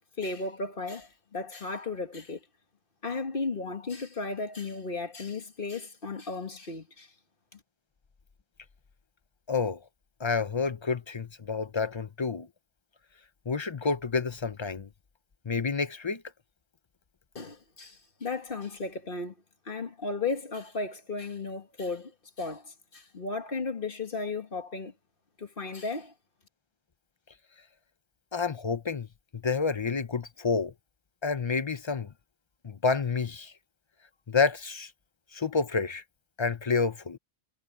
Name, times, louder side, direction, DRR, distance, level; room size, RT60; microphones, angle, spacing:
voice 1, 0.2-2.4 3.0-7.1 7.5-7.6 17.4-19.3 19.7-24.9 25.4-26.1, left 3 dB, 55° left, 1.9 m, -35 dB
voice 2, 9.5-9.8 10.2-12.5 13.5-14.9 15.5-16.2 28.3-29.1 29.3-30.7 31.2-32.1 32.6-33.5 34.3-34.9 35.3-36.0 36.4-37.2, left 4 dB, 30° left, 0.6 m, -29 dB
omnidirectional pair, 1.1 m